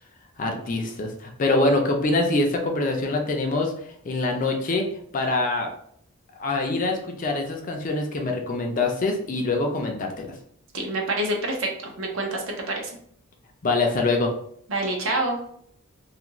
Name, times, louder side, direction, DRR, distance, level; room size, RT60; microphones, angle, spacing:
voice 1, 0.4-3.7 4.0-4.8 5.1-5.7 6.4-10.3 13.6-14.3, left 2 dB, 35° left, 2 dB, 0.4 m, -24 dB
voice 2, 10.7-13.0 14.7-15.4, right 2 dB, 60° right, 1 dB, 0.6 m, -27 dB
2.6 x 2.4 x 2.9 m, 0.67 s
head